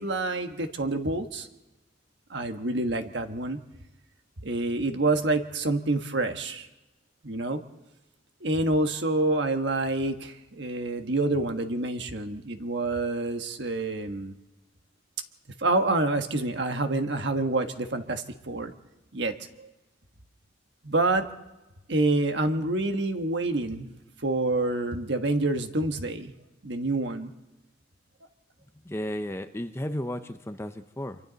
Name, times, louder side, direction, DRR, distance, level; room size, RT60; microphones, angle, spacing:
voice 1, 0.0-1.5 2.3-3.6 4.4-6.7 7.2-7.6 8.4-14.3 15.6-18.7 19.1-19.7 20.8-21.3 21.9-23.9 24.2-26.3 26.6-27.3, right 2 dB, 65° right, 6 dB, 1.4 m, -27 dB
voice 2, 28.8-31.2, left 1 dB, 15° left, 8 dB, 0.7 m, -33 dB
26.5 x 24.0 x 4.0 m, 1.0 s
head